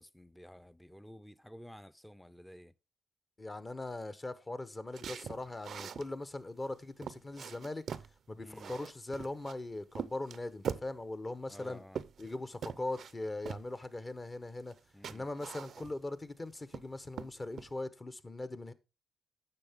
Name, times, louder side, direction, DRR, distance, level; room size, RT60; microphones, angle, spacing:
voice 1, 0.0-2.7 8.4-8.7 11.5-12.0 14.9-15.3, equal, 5° left, 0.6 m, -52 dB
voice 2, 3.4-7.8 8.3-11.8 12.2-14.7 15.1-18.7, left 2 dB, 30° left, 1.0 m, -40 dB
sound 1, 4.9-6.1 6.6-6.7 7.0-8.1 8.5-9.6 10.0-10.9 11.5-12.4 12.6-13.1 13.5-13.7 14.7-14.8 15.0-16.1 16.5-16.9 17.2-17.7, right 7 dB, 65° right, 0.5 m, -42 dB
9.8 x 6.6 x 3.6 m
supercardioid pair, 60°, 0 cm